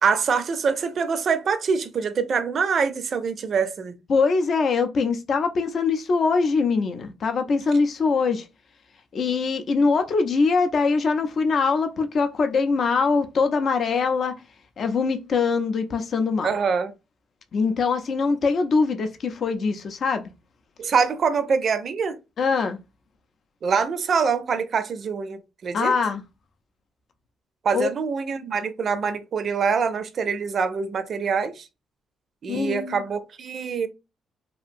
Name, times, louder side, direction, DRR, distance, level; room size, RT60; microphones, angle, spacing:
voice 1, 0.0-4.0 16.4-16.9 20.8-22.2 23.6-25.9 27.6-31.7 32.4-33.9, right 5 dB, 50° right, 0.4 m, -24 dB
voice 2, 4.1-8.5 9.1-14.4 14.8-16.5 17.5-20.2 22.4-22.8 25.7-26.2 27.7-27.9 32.5-33.0, left 4 dB, 55° left, 0.4 m, -23 dB
2.8 x 2.4 x 2.5 m
cardioid pair, 90°, 0 cm